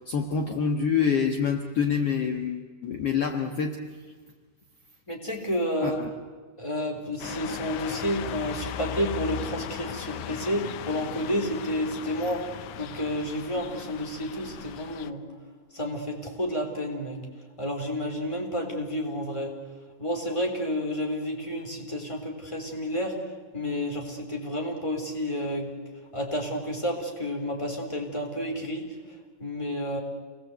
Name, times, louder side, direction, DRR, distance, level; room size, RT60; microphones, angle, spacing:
voice 1, 0.1-3.8 5.8-6.1, left 6 dB, 55° left, 3 dB, 2.3 m, -26 dB
voice 2, 5.1-6.0 6.6-12.5 12.8-15.2 15.7-17.2 17.6-19.6 20.0-23.2 23.5-25.7 26.1-28.9 29.4-30.0, equal, 10° left, 2 dB, 3.9 m, -30 dB
sound 1, 7.2-15.1, left 11 dB, 75° left, 2.2 m, -38 dB
28.5 x 20.0 x 8.1 m, 1.5 s
omnidirectional pair, 3.5 m